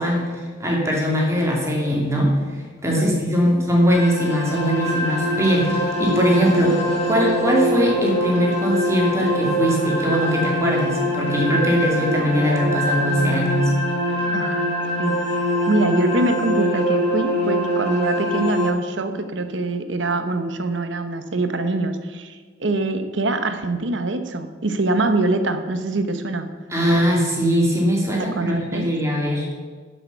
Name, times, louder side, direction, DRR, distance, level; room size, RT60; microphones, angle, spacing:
voice 1, 0.0-6.8 7.1-13.7 26.7-29.5, equal, 15° right, -2 dB, 2.7 m, -21 dB
sound 1, 3.9-18.7, equal, 35° left, 4.1 m, -23 dB
voice 2, 14.3-14.7 15.0-15.2 15.7-26.5 28.2-28.9, right 2 dB, 75° right, 8 dB, 1.0 m, -24 dB
11.0 x 6.7 x 6.8 m, 1.5 s
head